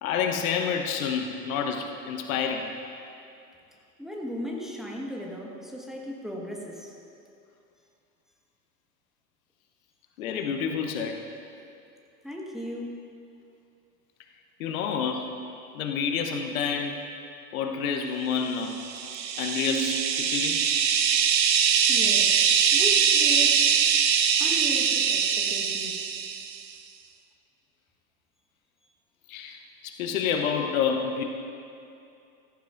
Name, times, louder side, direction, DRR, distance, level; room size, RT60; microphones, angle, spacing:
voice 1, 0.0-2.8 10.2-11.2 14.6-15.3 15.7-17.0 17.5-18.8 19.4-20.6 29.3-31.2, left 6 dB, 55° left, 4 dB, 1.0 m, -28 dB
voice 2, 4.0-6.9 12.2-12.9 21.9-23.7 24.4-26.0, equal, ahead, -2 dB, 1.5 m, -36 dB
sound 1, 18.8-26.6, right 7 dB, 85° right, 0.7 m, -23 dB
15.0 x 14.5 x 2.6 m, 2.6 s
figure-of-eight pair, 90°, 49 cm